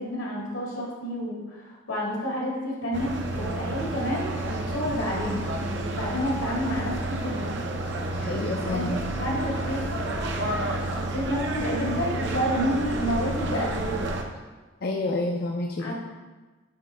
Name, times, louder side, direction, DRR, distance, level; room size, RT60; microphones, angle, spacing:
voice 1, 0.0-3.1 3.4-7.5 8.7-9.9 10.3-14.1 15.8-15.9, equal, 90° left, -4 dB, 2.1 m, -30 dB
sound 1, 2.9-14.2, right 2 dB, 60° right, 0.6 m, -30 dB
voice 2, 8.1-9.0 14.8-15.9, left 2 dB, 45° left, 1 dB, 0.4 m, -29 dB
8.6 x 3.1 x 4.3 m, 1.3 s
head